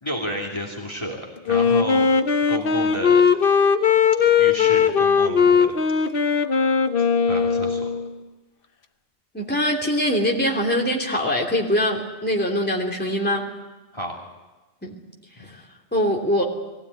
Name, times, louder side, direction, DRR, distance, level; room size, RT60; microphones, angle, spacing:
voice 1, 0.0-2.1 2.5-3.2 4.2-5.7 7.0-7.9 13.9-14.2 15.4-15.5, equal, 25° left, -1 dB, 2.9 m, -31 dB
Wind instrument woodwind instrument, 1.5-8.1, left 6 dB, 55° left, 1.1 m, -19 dB
voice 2, 9.3-13.4 14.8-14.9 15.9-16.4, equal, 10° left, -1 dB, 3.0 m, -22 dB
22.0 x 16.5 x 9.6 m, 1.1 s
omnidirectional pair, 1.1 m